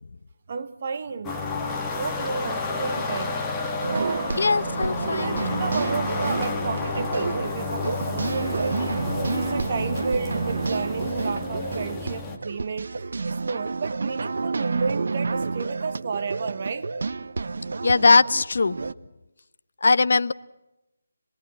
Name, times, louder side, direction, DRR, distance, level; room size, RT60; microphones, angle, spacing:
voice 1, 0.5-1.4 1.8-3.4 3.9-4.4 5.0-16.9, right 5 dB, 40° right, 1.6 m, -32 dB
sound 1, 1.2-12.4, left 3 dB, 10° left, 1.9 m, -31 dB
sound 2, 3.8-18.9, right 4 dB, 65° right, 1.1 m, -29 dB
voice 2, 4.4-5.7 17.8-18.8 19.8-20.3, left 3 dB, 65° left, 1.0 m, -20 dB
26.0 x 20.5 x 7.7 m
figure-of-eight pair, 165°, 0 cm